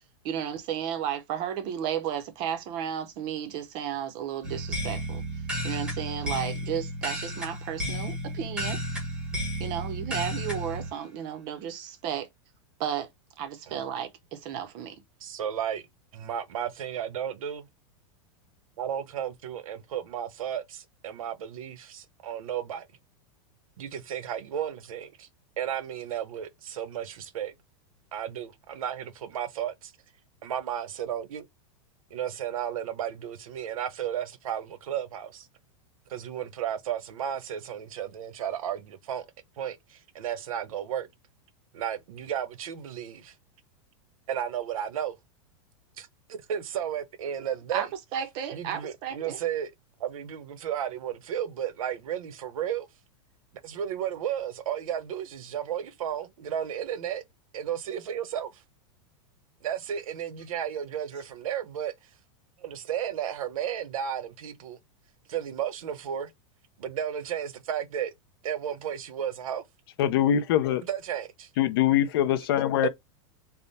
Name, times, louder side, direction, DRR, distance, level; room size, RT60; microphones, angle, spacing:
voice 1, 0.2-5.2 5.6-8.8 9.6-12.3 12.8-13.1 13.4-15.0 47.7-47.9 48.1-49.4, right 9 dB, 25° right, 0.6 m, -33 dB
sound 1, 4.4-10.9, equal, 5° right, 0.9 m, -33 dB
voice 2, 15.2-15.8 16.1-17.7 18.8-22.9 23.8-25.3 25.6-27.5 28.1-29.9 30.4-31.5 32.1-35.5 36.1-39.2 39.6-41.1 41.7-43.3 44.3-45.2 46.0-47.9 48.5-49.7 50.0-52.9 53.6-57.2 57.5-58.6 59.6-61.9 62.6-64.8 65.3-66.3 66.8-68.1 68.4-69.6 70.8-71.5 72.8-72.9, right 9 dB, 85° right, 0.9 m, -33 dB
voice 3, 70.0-70.8 71.6-72.9, left 11 dB, 45° left, 0.5 m, -23 dB
3.5 x 2.1 x 4.0 m
supercardioid pair, 180°, 17 cm